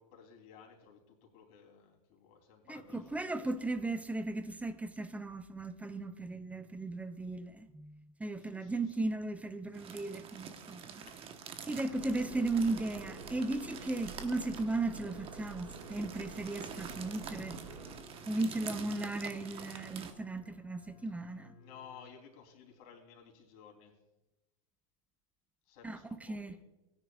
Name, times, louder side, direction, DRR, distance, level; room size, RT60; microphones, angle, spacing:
voice 1, 0.0-3.1 3.6-3.7 8.4-9.1 11.1-11.2 21.6-23.9 25.6-26.6, left 7 dB, 50° left, 3.3 m, -56 dB
voice 2, 2.7-11.0 11.7-17.6 18.3-21.5 25.8-26.6, right 2 dB, 10° right, 0.5 m, -36 dB
sound 1, 9.7-20.1, right 7 dB, 30° right, 1.1 m, -47 dB
sound 2, 11.9-17.9, right 4 dB, 75° right, 2.9 m, -49 dB
sound 3, 12.6-22.0, left 3 dB, 35° left, 1.5 m, -60 dB
17.0 x 10.0 x 2.4 m
hypercardioid pair, 110°, 18 cm